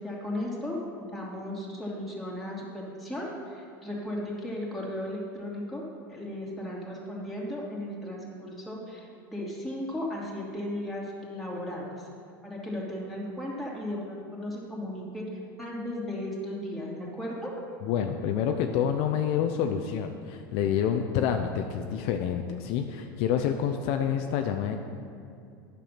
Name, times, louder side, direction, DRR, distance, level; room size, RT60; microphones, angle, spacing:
voice 1, 0.0-12.1 12.4-17.5, left 1 dB, ahead, -5 dB, 2.6 m, -36 dB
voice 2, 17.8-24.8, left 8 dB, 55° left, 5 dB, 0.6 m, -28 dB
9.1 x 6.9 x 5.8 m, 2.5 s
hypercardioid pair, 100°, 12 cm